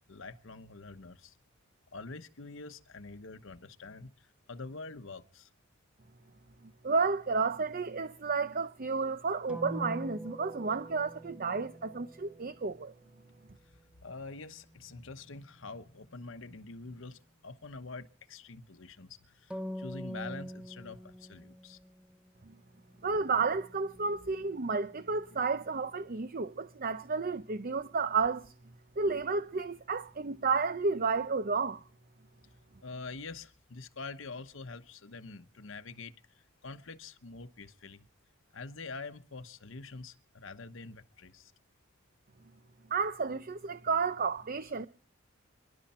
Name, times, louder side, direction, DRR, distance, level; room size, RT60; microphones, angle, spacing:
voice 1, 0.0-1.4 1.9-5.5 13.6-21.8 23.1-23.2 32.8-38.1 38.5-41.5, left 3 dB, 65° left, 1.0 m, -46 dB
voice 2, 6.8-12.9 22.5-22.6 23.0-28.5 29.0-31.8 42.9-44.9, right 4 dB, 45° right, 0.7 m, -31 dB
sound 1, 9.5-13.3 19.5-22.3 22.8-25.1, equal, 5° right, 1.0 m, -44 dB
28.0 x 11.5 x 4.3 m
head